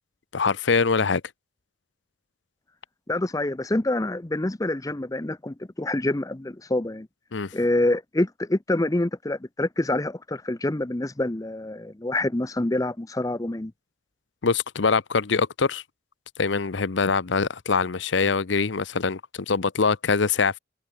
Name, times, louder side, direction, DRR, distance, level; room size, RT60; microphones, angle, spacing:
voice 1, 0.3-1.2 7.3-7.5 14.4-15.8 16.4-20.6, left 5 dB, 70° left, 0.8 m, -23 dB
voice 2, 3.1-7.1 7.5-13.7, left 1 dB, 20° left, 0.7 m, -26 dB
head